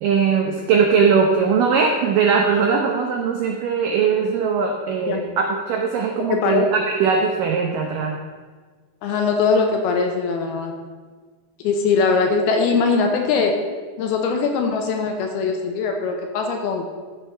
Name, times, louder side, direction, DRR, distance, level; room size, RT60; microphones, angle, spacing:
voice 1, 0.0-8.2, right 6 dB, 85° right, 2 dB, 1.9 m, -20 dB
voice 2, 6.3-6.7 9.0-10.7 11.6-13.6 14.0-16.8, left 4 dB, 75° left, 3 dB, 2.5 m, -21 dB
13.5 x 6.1 x 5.6 m, 1.4 s
omnidirectional pair, 5.1 m